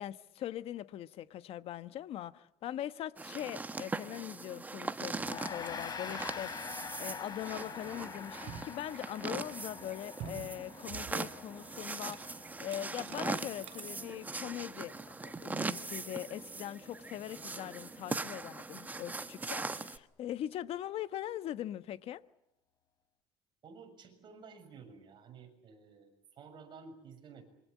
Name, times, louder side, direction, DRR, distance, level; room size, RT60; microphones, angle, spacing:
voice 1, 0.0-6.7 7.0-14.9 15.2-22.2, left 12 dB, 55° left, 1.2 m, -41 dB
sound 1, 3.2-20.0, right 3 dB, 15° right, 1.2 m, -41 dB
Gong, 5.2-14.7, left 6 dB, 30° left, 3.6 m, -46 dB
sound 2, 7.6-8.8 9.2-9.7 10.2-11.5 11.8-12.2 12.5-14.1 14.6-14.7, right 9 dB, 60° right, 7.3 m, -49 dB
voice 2, 23.6-27.4, right 5 dB, 40° right, 6.9 m, -53 dB
27.0 x 25.0 x 8.5 m
cardioid pair, 145°, 12 cm